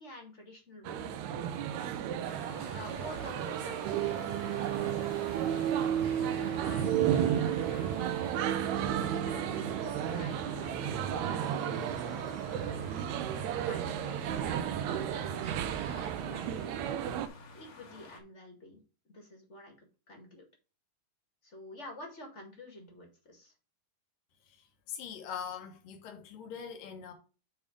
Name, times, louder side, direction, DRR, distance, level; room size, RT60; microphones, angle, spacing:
voice 1, 0.0-1.6 2.7-5.3 6.1-8.3 8.9-13.0 13.6-17.2 17.5-18.8 19.1-19.7 20.1-20.4 21.4-23.5, left 1 dB, 30° left, 1.4 m, -49 dB
sound 1, 0.8-17.3, right 10 dB, 80° right, 1.6 m, -32 dB
sound 2, 2.2-18.2, left 4 dB, 50° left, 1.4 m, -51 dB
sound 3, 2.2-16.1, right 2 dB, 50° right, 0.9 m, -53 dB
voice 2, 24.5-27.1, left 7 dB, 80° left, 2.9 m, -42 dB
8.7 x 3.5 x 4.9 m
omnidirectional pair, 3.8 m